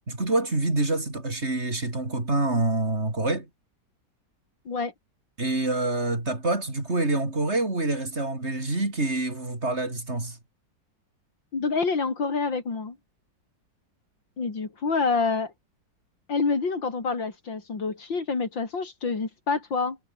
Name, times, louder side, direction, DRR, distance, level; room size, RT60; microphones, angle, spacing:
voice 1, 0.1-3.5 5.4-10.4, right 2 dB, 35° right, 5.1 m, -26 dB
voice 2, 11.5-13.0 14.4-15.5 16.3-20.0, left 4 dB, 80° left, 4.4 m, -27 dB
omnidirectional pair, 2.0 m